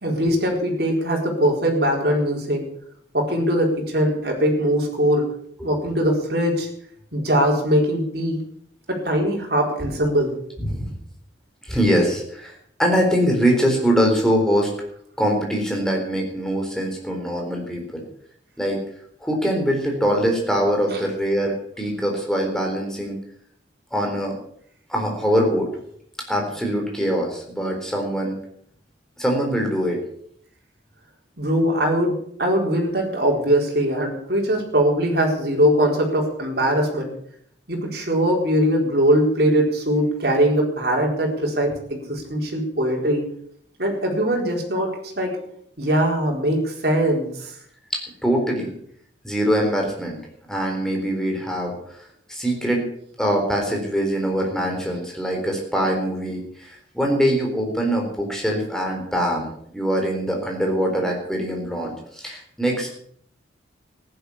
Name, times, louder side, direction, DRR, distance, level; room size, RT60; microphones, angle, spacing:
voice 1, 0.0-2.6 3.1-5.2 5.6-6.7 7.1-8.4 8.9-10.3 20.9-21.0 31.4-37.1 37.7-43.2 43.8-45.4 45.8-47.5, equal, 60° right, 0 dB, 4.3 m, -21 dB
voice 2, 10.6-10.9 11.6-14.7 15.2-18.0 18.6-18.8 19.2-23.2 23.9-24.4 24.9-25.7 26.3-28.4 29.2-30.0 48.2-48.7 49.2-50.2 50.5-51.7 52.3-52.9 53.2-62.9, equal, 5° left, 1 dB, 4.1 m, -23 dB
15.0 x 11.0 x 7.2 m, 0.67 s
head